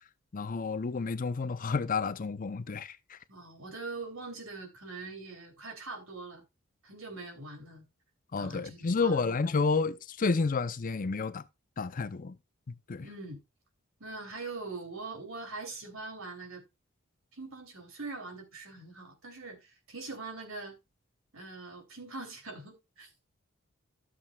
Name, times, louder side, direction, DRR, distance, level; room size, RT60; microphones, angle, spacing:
voice 1, 0.3-3.2 8.3-11.4 11.8-12.4 12.9-13.1, left 4 dB, 40° left, 0.6 m, -30 dB
voice 2, 3.3-6.4 6.8-7.9 8.4-9.2 13.0-13.4 14.0-16.6 17.3-20.8 21.3-23.2, right 3 dB, 75° right, 2.9 m, -42 dB
13.0 x 7.3 x 2.3 m
head